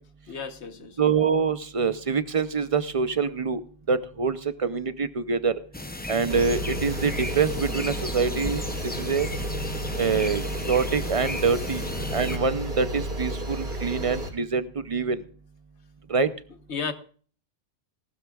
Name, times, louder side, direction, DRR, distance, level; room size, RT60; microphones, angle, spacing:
voice 1, 0.3-1.0 16.7-16.9, left 5 dB, 65° left, 10 dB, 1.3 m, -33 dB
voice 2, 1.0-3.6 3.9-5.5 6.1-9.3 10.0-10.4 10.7-11.8 12.1-15.2 16.1-16.3, right 5 dB, 35° right, 12 dB, 0.6 m, -25 dB
sound 1, 5.7-12.4, left 2 dB, 15° left, 0.4 m, -35 dB
sound 2, 6.3-14.3, right 1 dB, 60° right, 2.9 m, -32 dB
18.5 x 12.5 x 2.4 m, 0.42 s
omnidirectional pair, 1.2 m